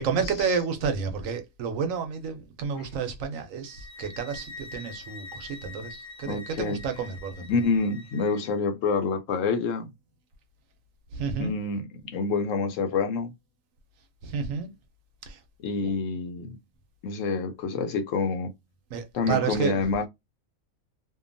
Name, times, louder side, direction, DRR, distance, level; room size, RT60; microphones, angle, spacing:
voice 1, 0.0-7.5 11.1-11.5 14.2-14.7 15.3-15.4 15.8-15.9 18.9-19.8, right 6 dB, 80° right, 1.0 m, -30 dB
sound 1, 3.6-8.5, left 3 dB, 45° left, 0.5 m, -45 dB
voice 2, 6.3-6.8 7.5-9.9 11.4-13.3 15.6-16.6 17.0-18.5 19.1-20.1, left 4 dB, 70° left, 1.0 m, -27 dB
2.7 x 2.2 x 2.5 m
omnidirectional pair, 1.4 m